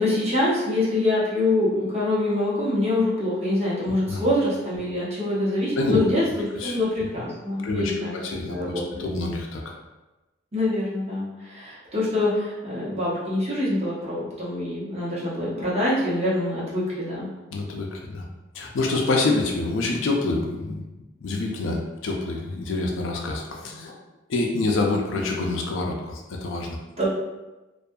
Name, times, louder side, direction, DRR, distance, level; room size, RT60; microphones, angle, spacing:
voice 1, 0.0-8.1 8.5-9.0 10.5-17.3 27.0-27.1, left 1 dB, 35° right, -8 dB, 0.9 m, -25 dB
voice 2, 7.6-8.7 9.0-9.7 17.5-18.2 18.5-20.8 21.2-23.9 24.3-26.8, left 2 dB, 75° left, 0 dB, 0.4 m, -26 dB
2.6 x 2.4 x 2.2 m, 1.1 s
head